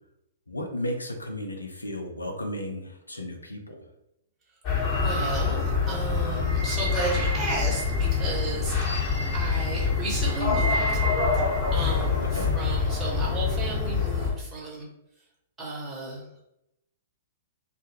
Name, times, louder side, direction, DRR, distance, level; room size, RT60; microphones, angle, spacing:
voice 1, 0.5-3.8 12.3-12.6, left 1 dB, 85° left, 3 dB, 0.5 m, -34 dB
sound 1, 4.6-14.3, left 4 dB, 25° left, 1.1 m, -25 dB
voice 2, 4.9-11.0 11.3-11.4 11.7-14.9 15.6-16.5, right 2 dB, 15° right, -5 dB, 1.0 m, -34 dB
2.2 x 2.1 x 3.1 m, 0.82 s
figure-of-eight pair, 110°, 0 cm